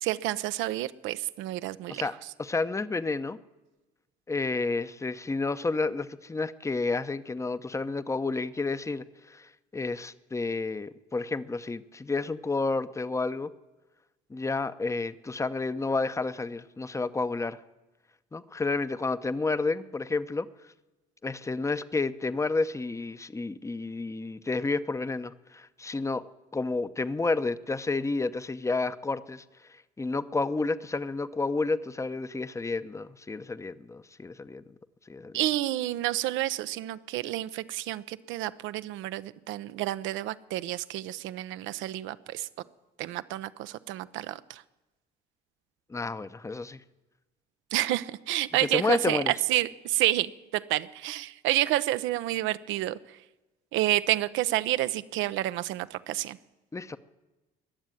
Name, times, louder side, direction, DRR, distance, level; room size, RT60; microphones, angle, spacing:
voice 1, 0.0-2.0 35.3-42.5 43.0-44.6 47.7-53.0 53.7-56.4, right 15 dB, 80° right, 14 dB, 0.7 m, -29 dB
voice 2, 2.4-3.4 4.3-13.5 14.3-17.6 18.3-20.5 21.2-26.2 26.5-29.4 30.0-34.6 35.1-35.3 45.9-46.8 48.7-49.3 56.7-57.0, left 3 dB, 15° left, 13 dB, 0.7 m, -30 dB
20.0 x 7.2 x 9.2 m, 1.1 s
supercardioid pair, 85°, 20 cm